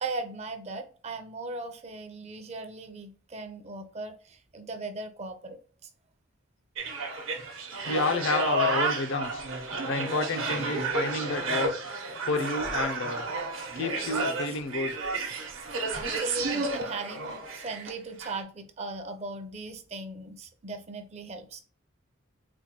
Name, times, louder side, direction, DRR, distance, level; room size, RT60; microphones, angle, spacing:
voice 1, 0.0-5.9 16.0-21.6, right 3 dB, 30° right, 0.5 m, -38 dB
sound 1, 6.8-17.9 18.2-18.4, right 2 dB, 70° right, 0.9 m, -31 dB
voice 2, 7.9-9.4 9.9-11.7 12.3-13.3 13.8-14.9, left 3 dB, 60° left, 0.4 m, -30 dB
4.3 x 2.2 x 2.9 m
head